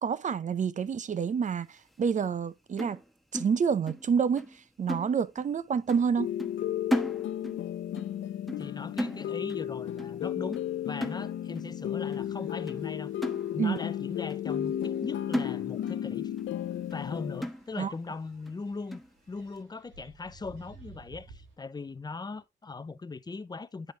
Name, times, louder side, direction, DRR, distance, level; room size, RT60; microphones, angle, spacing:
voice 1, 0.0-1.7 2.0-3.0 3.3-4.5 4.8-6.3 13.6-13.8 17.8-17.9, right 6 dB, 40° right, 0.6 m, -28 dB
sound 1, 2.8-4.1 4.4-4.6 4.9-5.6 5.9-6.1 6.4-7.7 8.0-8.2 8.5-8.7 9.0-9.7 10.0-10.2 10.5-10.7 11.0-11.6 12.1-12.2 12.7-12.8 13.2-13.9 14.3-14.4 14.8-15.0 15.3-16.1 16.4-16.5 16.9-17.0 17.4-18.0 18.5-18.6 18.9-19.1, equal, ahead, 1.1 m, -35 dB
sound 2, 6.2-17.4, left 11 dB, 70° left, 0.7 m, -34 dB
voice 2, 8.6-13.1 13.5-16.3 16.9-19.0 19.3-23.9, left 4 dB, 20° left, 0.6 m, -39 dB
sound 3, 12.0-21.5, right 4 dB, 85° right, 3.1 m, -57 dB
9.6 x 5.1 x 3.3 m
cardioid pair, 90°, 20 cm